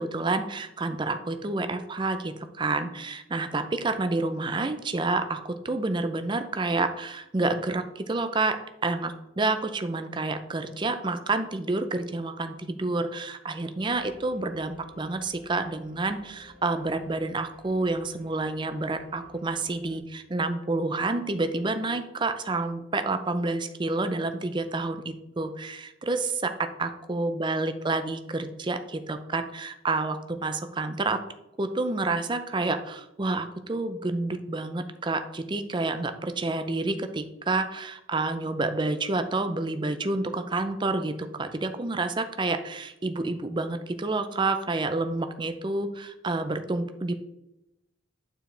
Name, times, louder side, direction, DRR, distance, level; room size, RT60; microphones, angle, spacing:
voice 1, 0.0-8.6 8.8-26.5 26.8-31.2 31.6-47.1, right 3 dB, 25° right, 9 dB, 0.5 m, -29 dB
sound 1, 13.8-20.0, left 1 dB, 10° left, 1.3 m, -55 dB
9.0 x 4.7 x 3.3 m, 0.89 s
head